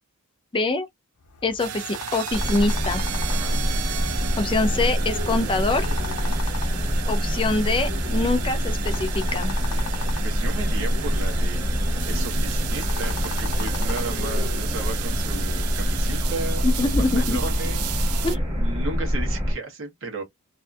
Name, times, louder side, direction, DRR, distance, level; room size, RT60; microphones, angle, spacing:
voice 1, 0.5-0.9 1.4-3.0 4.4-5.9 7.1-9.5 16.6-17.4 18.2-18.4, left 3 dB, 20° left, 0.5 m, -24 dB
sound 1, 1.2-14.4, left 4 dB, 85° left, 0.7 m, -39 dB
sound 2, 1.6-18.4, right 11 dB, 80° right, 0.4 m, -34 dB
sound 3, 2.3-19.5, equal, 20° right, 1.1 m, -25 dB
voice 2, 3.3-3.6 10.2-11.6 12.0-18.2 18.5-20.2, right 3 dB, 60° right, 1.0 m, -34 dB
2.6 x 2.5 x 2.3 m
head